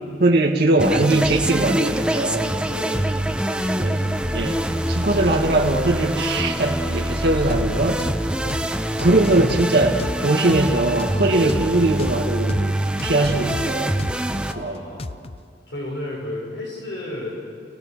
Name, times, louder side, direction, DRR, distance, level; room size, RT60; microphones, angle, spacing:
voice 1, 0.2-2.5 3.7-4.0 4.3-8.0 9.0-13.9 14.6-14.8, right 2 dB, 60° right, -1 dB, 2.0 m, -21 dB
sound 1, 0.8-14.5, right 1 dB, 5° right, 0.9 m, -24 dB
voice 2, 2.7-3.0 8.4-8.6 14.5-15.2 15.7-17.3, left 1 dB, 70° left, -3 dB, 6.8 m, -33 dB
sound 2, 7.5-7.7 8.0-8.2 8.5-8.7 9.0-10.7 11.0-11.1 11.5-11.7 12.0-12.2 12.5-12.7 13.0-14.5 15.0-15.4, left 2 dB, 35° left, 0.6 m, -31 dB
29.5 x 18.5 x 6.7 m, 2.4 s
head